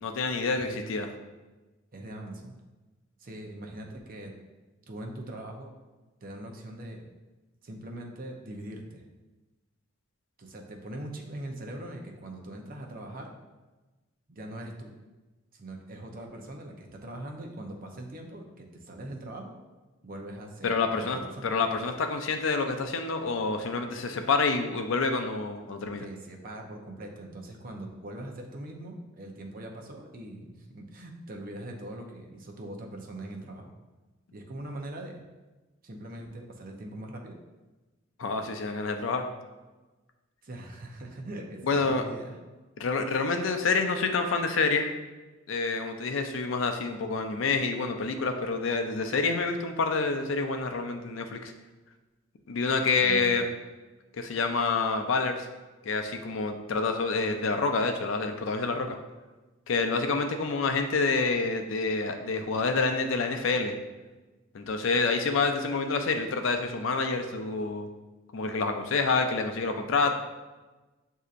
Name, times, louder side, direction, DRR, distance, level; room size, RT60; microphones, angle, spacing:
voice 1, 0.0-1.1 20.6-26.1 38.2-39.3 41.6-42.0 42.8-44.9 45.5-51.5 52.5-53.4 54.2-55.5 55.8-59.0 59.7-63.7 64.5-67.9 68.3-70.2, left 4 dB, 70° left, 6 dB, 0.5 m, -27 dB
voice 2, 1.9-2.5 3.2-4.3 4.9-5.7 6.2-7.1 7.6-9.0 10.4-13.4 14.3-14.9 15.6-19.6 20.0-21.5 26.0-33.7 34.3-35.2 35.8-37.4 40.4-42.4 53.0-53.3, right 1 dB, 45° right, 1 dB, 0.6 m, -41 dB
7.7 x 2.7 x 2.5 m, 1.2 s
head